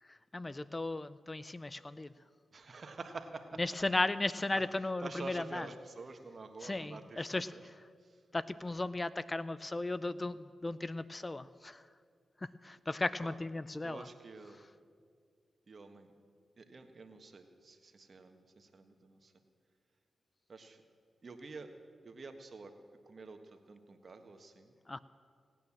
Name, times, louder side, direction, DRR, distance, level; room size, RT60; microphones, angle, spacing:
voice 1, 0.0-2.1 3.6-5.7 6.6-7.7 8.3-11.9 12.4-14.1 24.9-25.0, left 2 dB, 30° left, 16 dB, 0.5 m, -36 dB
voice 2, 2.5-3.6 4.5-4.6 5.0-7.6 8.0-8.2 13.2-13.4 13.8-14.6 15.7-16.1 16.6-19.3 20.5-20.8 21.2-21.7 22.0-22.7 23.0-24.8, right 3 dB, 55° right, 7 dB, 1.4 m, -48 dB
18.0 x 9.1 x 7.2 m, 2.1 s
supercardioid pair, 45°, 0 cm